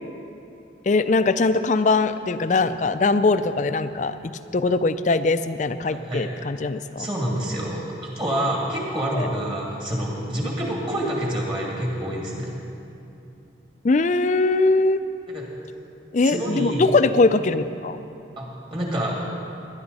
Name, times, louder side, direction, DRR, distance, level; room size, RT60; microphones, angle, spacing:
voice 1, 0.9-7.1 9.1-9.3 13.8-15.0 16.1-18.0, left 3 dB, 40° left, 11 dB, 0.4 m, -21 dB
voice 2, 5.9-6.2 7.0-12.5 15.3-15.4 16.2-16.9 18.4-19.2, right 1 dB, 25° right, -3 dB, 2.4 m, -27 dB
19.0 x 10.5 x 4.1 m, 2.7 s
head